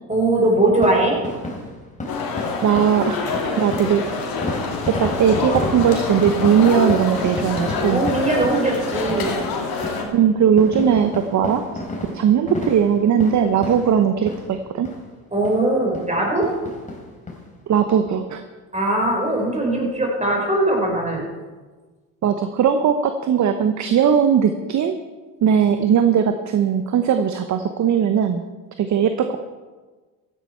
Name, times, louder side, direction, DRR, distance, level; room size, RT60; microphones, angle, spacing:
voice 1, 0.1-1.2 7.9-9.4 15.3-16.5 18.7-21.3, right 2 dB, 15° right, -1 dB, 4.8 m, -20 dB
sound 1, 0.7-14.6 14.9-15.0 15.4-15.6 15.9-16.1 16.4-17.4 17.8-17.9 18.1-18.2, left 2 dB, 15° left, 3.8 m, -32 dB
sound 2, 2.1-10.0, left 4 dB, 50° left, 2.6 m, -26 dB
voice 2, 2.6-3.2 3.6-4.1 5.0-8.0 10.1-11.6 12.1-14.9 17.7-18.4 22.2-24.9 25.4-28.4 28.8-29.4, right 8 dB, 40° right, 8 dB, 0.9 m, -18 dB
15.0 x 11.0 x 4.5 m, 1.3 s
hypercardioid pair, 70°, 46 cm